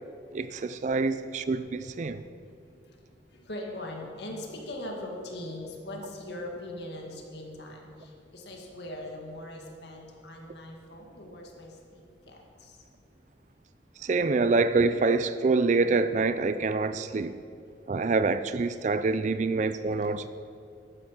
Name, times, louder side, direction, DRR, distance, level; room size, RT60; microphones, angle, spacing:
voice 1, 0.3-2.2 14.0-17.4 17.9-20.3, right 3 dB, 40° right, 12 dB, 0.3 m, -26 dB
voice 2, 3.3-12.8, left 1 dB, 60° left, 0 dB, 2.0 m, -41 dB
12.0 x 9.7 x 5.9 m, 2.6 s
head